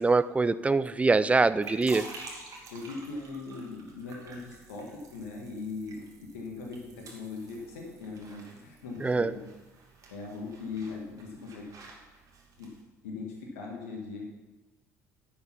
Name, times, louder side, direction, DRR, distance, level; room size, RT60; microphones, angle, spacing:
voice 1, 0.0-2.1 9.0-9.3, right 3 dB, 15° right, 15 dB, 0.5 m, -24 dB
sound 1, 1.2-12.8, right 3 dB, 45° right, 2.4 m, -49 dB
voice 2, 2.7-9.5 10.1-11.7 12.6-12.7 13.0-14.2, left 4 dB, 75° left, 0 dB, 1.7 m, -40 dB
10.5 x 6.8 x 5.8 m, 1.1 s
figure-of-eight pair, 55°, 8 cm